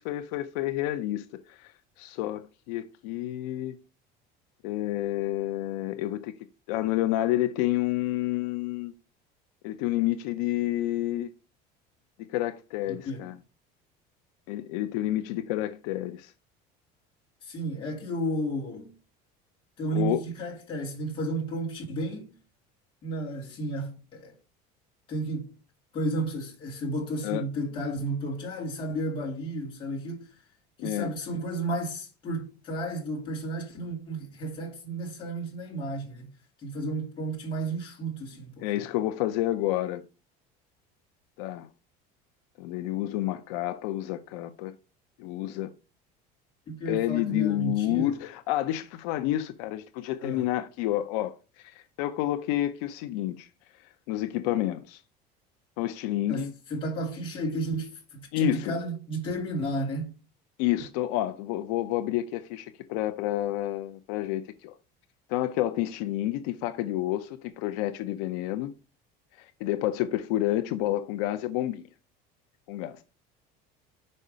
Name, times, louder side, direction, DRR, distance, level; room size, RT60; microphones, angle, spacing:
voice 1, 0.0-1.7 2.0-3.8 4.6-6.3 6.7-8.9 9.6-11.3 12.2-13.3 14.5-16.3 19.9-20.2 27.2-27.4 30.8-31.1 38.6-40.0 41.4-41.7 42.6-44.7 45.2-45.7 46.9-53.5 54.1-55.0 55.8-56.5 58.3-58.7 60.6-64.7 65.3-68.7 69.4-71.8 72.7-73.0, left 14 dB, 85° left, 0.7 m, -29 dB
voice 2, 12.9-13.3 17.4-18.9 19.8-22.3 23.0-24.3 25.1-25.5 25.9-30.3 30.8-36.3 36.6-38.7 46.7-48.2 50.2-50.5 56.3-60.1, right 1 dB, 25° left, 2.5 m, -32 dB
5.5 x 5.4 x 4.9 m
cardioid pair, 180°, 19 cm